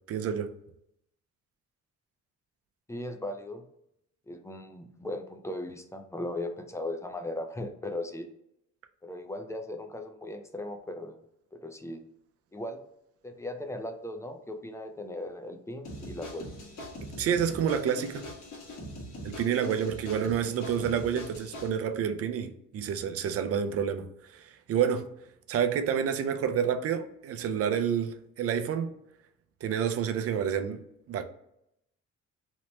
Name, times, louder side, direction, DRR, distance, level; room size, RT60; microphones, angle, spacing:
voice 1, 0.1-0.5 17.2-18.3 19.2-25.1 25.5-28.9 29.6-30.8 31.1-31.2, right 8 dB, 50° right, 0.4 m, -29 dB
voice 2, 2.9-3.6 4.3-8.3 9.0-11.2 11.6-12.0 12.5-12.8 13.2-16.5, left 1 dB, 10° left, 0.3 m, -37 dB
sound 1, 15.8-21.7, left 1 dB, 70° left, 1.2 m, -42 dB
2.9 x 2.1 x 3.0 m
cardioid pair, 90°, 30 cm